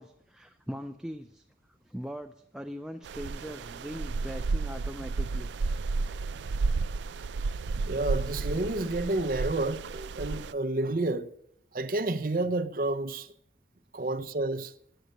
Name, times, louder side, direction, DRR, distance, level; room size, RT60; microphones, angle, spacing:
voice 1, 0.0-1.4 1.8-5.5 6.0-6.2, equal, 5° right, 0.4 m, -41 dB
sound 1, 3.0-10.5, right 3 dB, 90° right, 0.4 m, -32 dB
voice 2, 7.9-11.3 11.7-13.3 13.9-14.7, right 2 dB, 50° right, 0.7 m, -30 dB
11.0 x 7.8 x 8.1 m
head